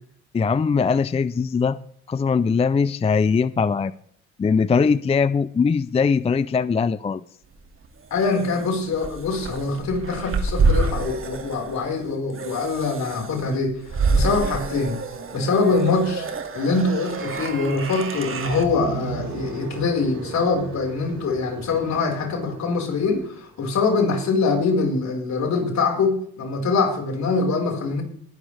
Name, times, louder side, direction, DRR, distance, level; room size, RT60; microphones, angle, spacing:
voice 1, 0.3-1.8 2.1-3.9 4.4-7.2, left 5 dB, 20° left, 16 dB, 0.4 m, -21 dB
sound 1, 7.6-18.7, right 3 dB, 45° right, 2.2 m, -27 dB
voice 2, 8.1-15.0 15.3-16.3 16.5-28.0, left 4 dB, 65° left, 1 dB, 4.7 m, -23 dB
sound 2, 18.4-23.4, right 4 dB, 80° right, 7.5 m, -36 dB
20.0 x 11.5 x 3.4 m, 0.63 s
cardioid pair, 90°, 30 cm